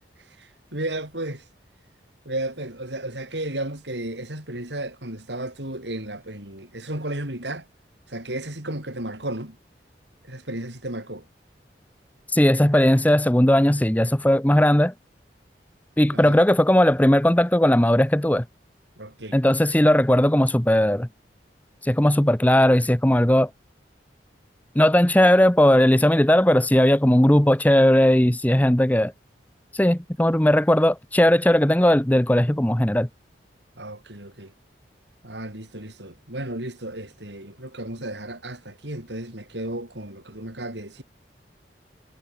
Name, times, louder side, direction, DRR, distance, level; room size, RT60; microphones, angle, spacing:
voice 1, 0.4-1.4 2.3-7.7 8.1-9.6 10.2-11.2 16.1-16.4 19.0-19.4 33.8-34.5 35.2-41.0, right 1 dB, 80° right, 7.4 m, -33 dB
voice 2, 12.3-14.9 16.0-18.4 19.3-21.1 21.8-23.5 24.8-29.1 29.7-33.1, left 1 dB, 10° left, 0.8 m, -18 dB
head